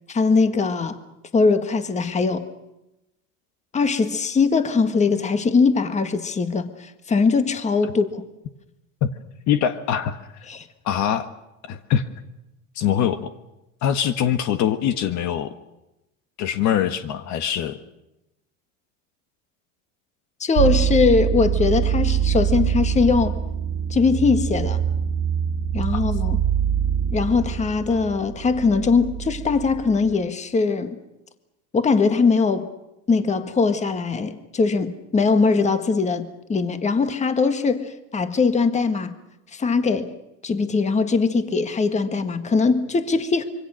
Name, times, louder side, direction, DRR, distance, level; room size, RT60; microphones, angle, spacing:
voice 1, 0.1-1.0 1.3-2.5 3.7-8.2 10.5-10.7 20.4-23.3 23.9-24.8 25.7-26.4 27.1-31.0 31.7-32.7 33.1-39.1 39.5-40.1 40.4-43.4, left 4 dB, 15° left, 1.7 m, -21 dB
voice 2, 9.5-10.5 10.8-11.3 11.6-12.0 12.7-13.3 13.8-15.5 16.4-17.8 25.9-26.0, left 9 dB, 45° left, 1.5 m, -23 dB
sound 1, 20.6-30.1, right 9 dB, 70° right, 2.5 m, -24 dB
26.0 x 24.5 x 6.4 m
supercardioid pair, 130°, 39 cm